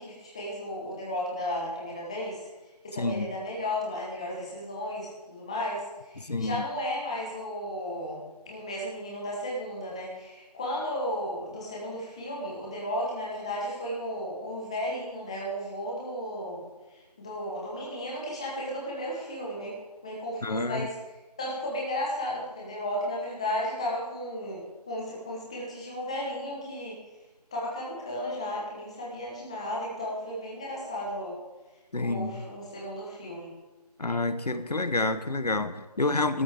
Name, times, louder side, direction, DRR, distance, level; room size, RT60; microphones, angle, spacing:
voice 1, 0.0-2.5 2.8-20.9 21.4-27.0 27.5-31.4 32.0-33.5, left 1 dB, 10° left, -4 dB, 1.3 m, -34 dB
voice 2, 3.0-3.3 6.2-6.6 20.4-20.9 31.9-32.5 34.0-36.4, left 2 dB, 75° left, 11 dB, 1.2 m, -28 dB
15.5 x 13.5 x 3.6 m, 1.1 s
figure-of-eight pair, 170°, 21 cm